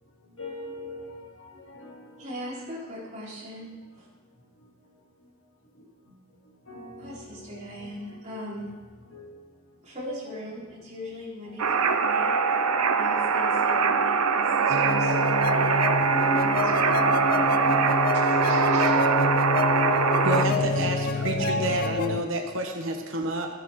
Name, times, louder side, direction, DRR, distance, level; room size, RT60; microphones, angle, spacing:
voice 1, 0.4-2.1 6.7-8.4 9.1-9.4 10.3-10.4 11.5-11.6 13.8-14.1 14.5-14.6 15.0-15.7 16.5-17.1 17.6-17.9 18.9-19.0 19.9-20.6 20.9-21.3 22.9-23.1, left 2 dB, 60° left, 2.7 m, -43 dB
voice 2, 2.2-4.1 7.0-8.7 9.8-12.4 13.0-15.8 16.2-17.8 18.1-19.0, equal, 30° right, 4.1 m, -39 dB
sound 1, 11.6-20.5, right 5 dB, 85° right, 0.8 m, -23 dB
sound 2, 14.7-22.2, left 3 dB, 40° left, 0.5 m, -27 dB
voice 3, 20.2-23.5, right 1 dB, 60° right, 1.2 m, -29 dB
15.0 x 11.0 x 3.7 m
head